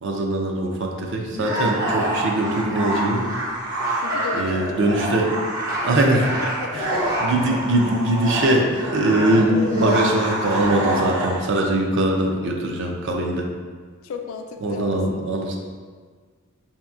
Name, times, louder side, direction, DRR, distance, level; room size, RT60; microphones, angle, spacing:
voice 1, 0.0-3.3 4.3-5.3 5.8-6.3 7.2-13.4 14.6-15.6, right 1 dB, 60° right, 1 dB, 0.5 m, -21 dB
sound 1, 1.3-11.5, right 1 dB, 40° right, 0.9 m, -26 dB
voice 2, 4.0-4.9 5.8-5.9 6.4-7.6 9.5-10.0 12.1-12.6 14.0-15.3, left 4 dB, 65° left, 5 dB, 0.4 m, -34 dB
5.0 x 2.8 x 2.4 m, 1.6 s
head